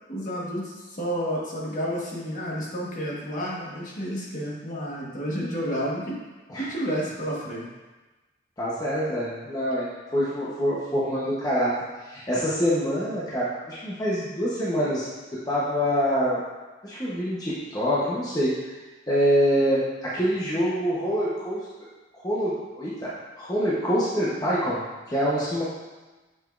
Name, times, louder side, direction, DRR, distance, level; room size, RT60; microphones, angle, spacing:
voice 1, 0.1-6.2 6.6-7.7, equal, 40° left, -4 dB, 1.4 m, -30 dB
voice 2, 8.6-11.7 12.0-15.1 15.5-16.4 16.8-18.7 19.1-21.6 22.2-23.1 23.4-25.6, equal, 20° left, -8 dB, 0.9 m, -25 dB
7.3 x 6.2 x 2.5 m, 1.2 s
head